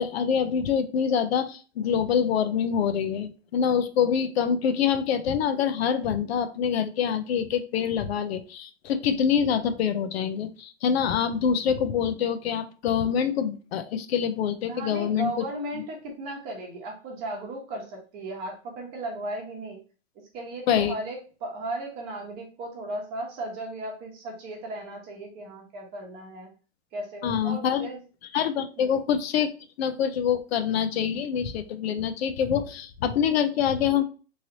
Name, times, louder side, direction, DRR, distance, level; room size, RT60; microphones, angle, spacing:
voice 1, 0.0-15.4 15.7-15.8 20.7-21.0 27.2-27.9 28.3-29.5 29.8-34.0, left 8 dB, 70° left, 10 dB, 0.5 m, -25 dB
voice 2, 14.7-19.8 20.3-26.5 26.9-28.0 28.8-28.9, right 2 dB, 30° right, 1 dB, 0.9 m, -36 dB
3.1 x 2.8 x 2.7 m, 0.36 s
hypercardioid pair, 145°, 33 cm